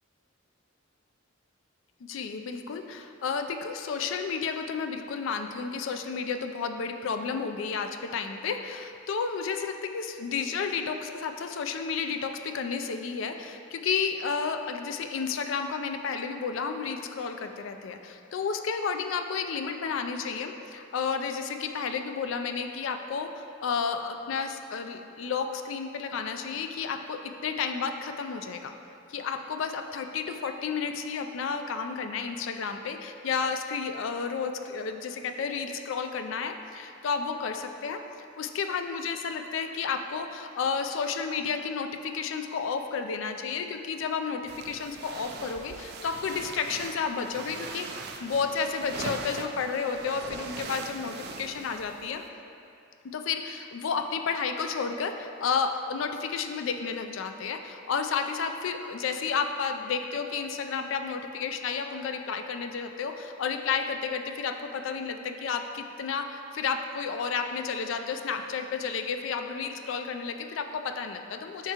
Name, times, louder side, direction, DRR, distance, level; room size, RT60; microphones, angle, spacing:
voice 1, 2.0-28.8 29.1-38.0 38.4-47.9 48.2-52.2 53.1-71.7, left 5 dB, 65° left, 6 dB, 0.4 m, -32 dB
sound 1, 44.5-52.3, right 4 dB, 50° right, 0.4 m, -41 dB
7.3 x 4.5 x 2.9 m, 2.6 s
head